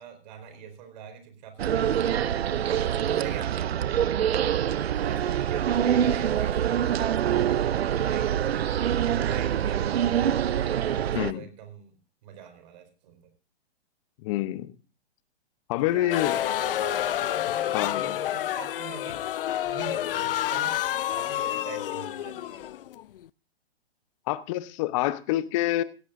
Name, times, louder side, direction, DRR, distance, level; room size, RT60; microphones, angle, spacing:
voice 1, 0.0-2.6 3.0-3.7 4.3-7.3 7.6-11.9 12.2-13.3 15.9-20.8 21.0-22.7, right 8 dB, 45° right, 4.1 m, -44 dB
sound 1, 1.6-11.3, right 9 dB, 75° right, 0.6 m, -25 dB
voice 2, 11.1-11.5 14.2-14.7 15.7-16.4 17.7-18.2 24.3-25.8, left 15 dB, 30° left, 0.8 m, -27 dB
sound 2, 16.1-23.3, left 12 dB, 60° left, 0.5 m, -29 dB
16.5 x 16.5 x 2.6 m
hypercardioid pair, 135°, 32 cm